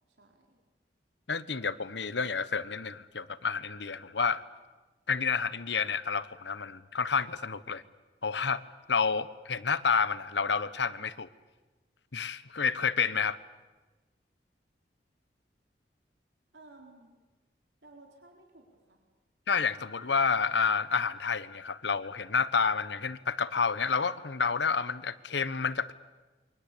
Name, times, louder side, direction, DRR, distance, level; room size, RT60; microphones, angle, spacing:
voice 1, 0.1-0.6 16.5-17.1 17.8-19.0, right 2 dB, 80° right, 2 dB, 4.2 m, -55 dB
voice 2, 1.3-4.4 5.1-7.8 8.2-8.6 8.9-11.3 12.1-13.4 19.5-25.9, left 5 dB, 80° left, 15 dB, 1.1 m, -29 dB
29.0 x 24.0 x 8.5 m, 1.2 s
head